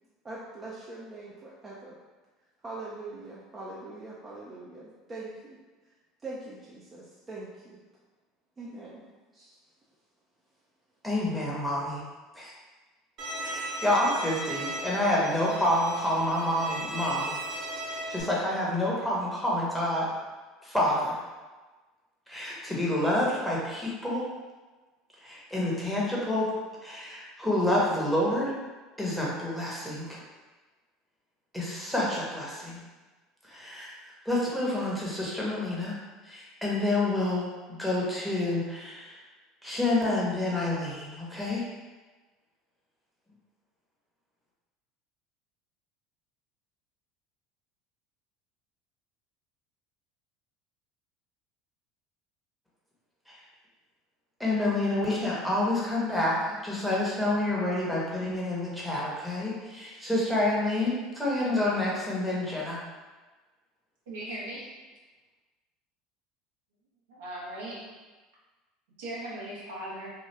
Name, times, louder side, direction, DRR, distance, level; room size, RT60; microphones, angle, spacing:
voice 1, 0.2-2.0 2.6-5.6 6.2-7.8 8.6-9.0 9.3-9.5, right 2 dB, 25° right, -6 dB, 0.6 m, -42 dB
voice 2, 11.0-12.0 12.3-12.5 13.4-17.4 17.9-20.1 20.6-21.2 22.3-24.3 25.2-26.5 26.8-28.5 29.0-30.2 31.5-32.8 33.4-36.0 36.2-39.2 39.6-41.6 53.3-53.4 54.4-62.8, left 1 dB, ahead, -6 dB, 1.0 m, -28 dB
Bowed string instrument, 13.2-18.2, right 1 dB, 55° right, 0.7 m, -36 dB
voice 3, 64.1-64.7 67.1-67.7 69.0-70.1, right 1 dB, 75° right, -6 dB, 1.0 m, -38 dB
2.9 x 2.2 x 3.3 m, 1.3 s
hypercardioid pair, 80°, 0 cm